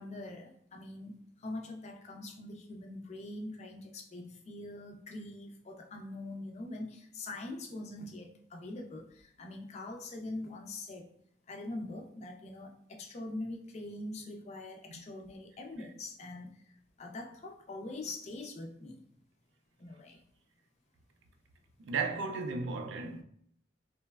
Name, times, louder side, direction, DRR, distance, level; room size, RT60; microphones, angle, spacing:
voice 1, 0.0-11.1 11.5-16.6 17.0-19.0 19.8-20.2, left 2 dB, 35° left, 0.4 m, -43 dB
voice 2, 21.8-23.2, right 4 dB, 70° right, 0.3 m, -34 dB
3.1 x 2.0 x 2.2 m
head